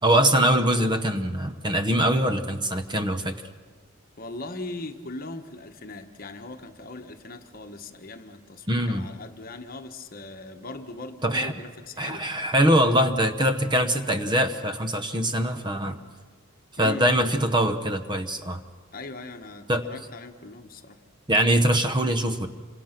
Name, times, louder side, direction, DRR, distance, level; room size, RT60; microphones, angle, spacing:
voice 1, 0.0-3.4 8.7-9.1 11.2-11.5 12.0-16.0 16.7-18.6 19.7-19.8 21.3-22.5, right 1 dB, 20° right, 9 dB, 0.9 m, -23 dB
voice 2, 4.2-12.3 16.8-17.1 18.9-21.0, left 2 dB, 45° left, 6 dB, 1.3 m, -40 dB
27.0 x 25.5 x 5.9 m, 1.5 s
head